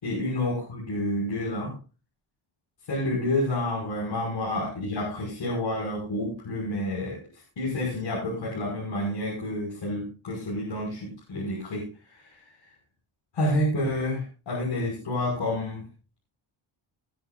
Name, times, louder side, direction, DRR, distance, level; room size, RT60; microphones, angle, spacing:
voice 1, 0.0-1.7 2.9-12.4 13.3-15.8, left 1 dB, 65° left, -3 dB, 5.9 m, -29 dB
19.0 x 11.0 x 2.5 m, 0.34 s
wide cardioid pair, 155°, 48 cm